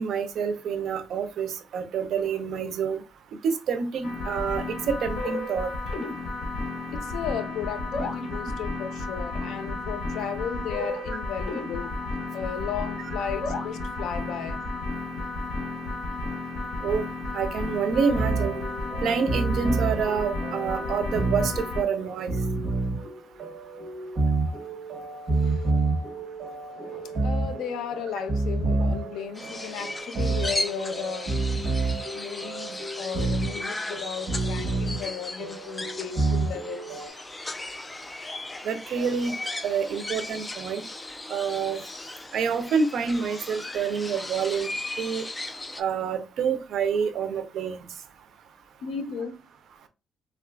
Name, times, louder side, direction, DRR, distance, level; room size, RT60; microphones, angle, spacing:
voice 1, 0.0-3.0 3.4-5.7 16.8-17.1 17.3-18.5 19.0-22.3 38.6-39.3 39.6-40.8 41.3-41.8 42.3-44.7 45.0-45.2 45.8-47.8, right 6 dB, 65° right, 0.5 m, -27 dB
sound 1, 4.0-21.8, left 2 dB, 50° left, 1.1 m, -32 dB
voice 2, 6.9-11.9 12.3-14.6 25.3-25.7 26.7-36.9 48.8-49.4, left 7 dB, 80° left, 0.5 m, -35 dB
sound 2, 17.9-37.1, right 3 dB, 45° right, 1.1 m, -29 dB
sound 3, 29.4-45.8, left 2 dB, 15° left, 0.3 m, -36 dB
3.7 x 2.4 x 2.2 m
cardioid pair, 120°, 0 cm